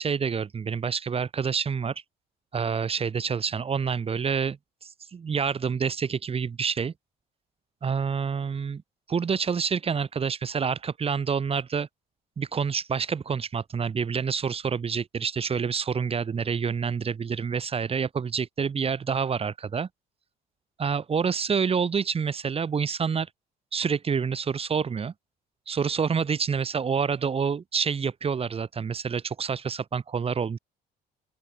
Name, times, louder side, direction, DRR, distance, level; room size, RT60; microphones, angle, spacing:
voice 1, 0.0-2.0 2.5-6.9 7.8-8.8 9.1-11.9 12.4-19.9 20.8-23.3 23.7-25.1 25.7-30.6, right 6 dB, 35° right, 6.0 m, -27 dB
open air
cardioid pair, 110°, 17 cm